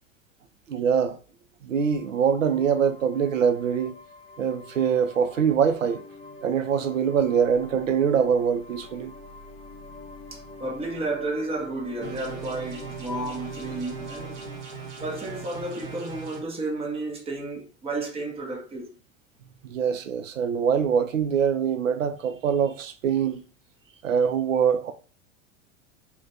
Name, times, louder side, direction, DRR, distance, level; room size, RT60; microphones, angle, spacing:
voice 1, 0.7-1.2 1.6-4.0 4.4-6.0 6.4-9.1 19.6-23.4 24.0-24.9, right 7 dB, 80° right, 0.5 m, -23 dB
sound 1, 1.8-16.2, left 3 dB, 15° left, 1.2 m, -46 dB
voice 2, 10.3-14.5 15.0-19.0, right 2 dB, 15° right, 0.7 m, -32 dB
sound 2, 12.0-16.4, right 6 dB, 45° right, 1.0 m, -39 dB
3.2 x 2.2 x 2.5 m
figure-of-eight pair, 85°, 38 cm